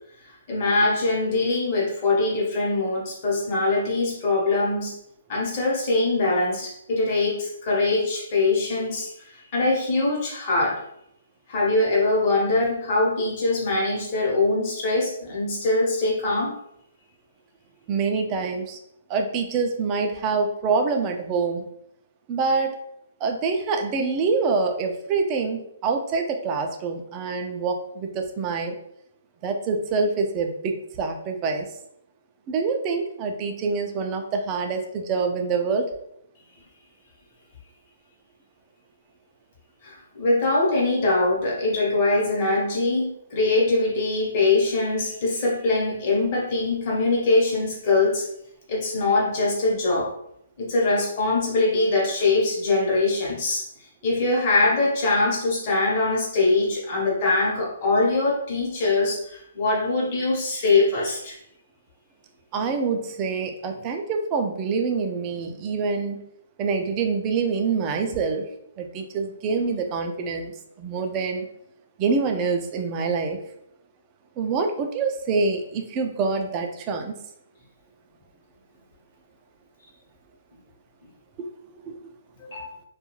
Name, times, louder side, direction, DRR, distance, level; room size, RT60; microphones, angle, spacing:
voice 1, 0.3-5.0 5.3-10.8 11.5-16.5 39.8-48.3 48.7-50.1 50.6-53.7 54.0-61.4 82.4-82.7, left 2 dB, 35° left, -4 dB, 0.9 m, -23 dB
voice 2, 17.9-18.8 19.1-21.7 22.3-22.8 23.2-28.8 29.4-31.7 32.5-35.9 62.5-66.2 66.6-68.5 68.8-71.4 72.0-73.4 74.4-77.1 81.4-81.5 81.9-82.0, right 4 dB, 25° right, 4 dB, 0.3 m, -26 dB
2.3 x 2.2 x 3.0 m, 0.75 s
hypercardioid pair, 160°, 0 cm